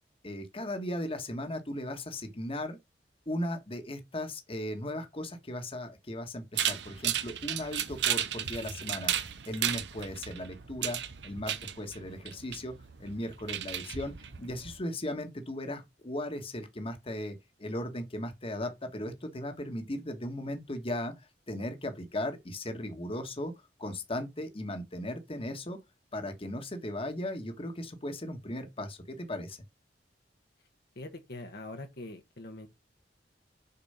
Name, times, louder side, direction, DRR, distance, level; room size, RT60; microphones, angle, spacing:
voice 1, 0.2-2.8 3.3-11.0 11.2-12.7 13.0-23.5 23.8-25.8 26.1-29.6, left 1 dB, 35° left, 1.5 m, -37 dB
sound 1, 6.6-14.8, right 10 dB, 70° right, 0.8 m, -34 dB
voice 2, 30.9-32.7, left 2 dB, 60° left, 1.3 m, -43 dB
6.9 x 4.4 x 5.6 m
head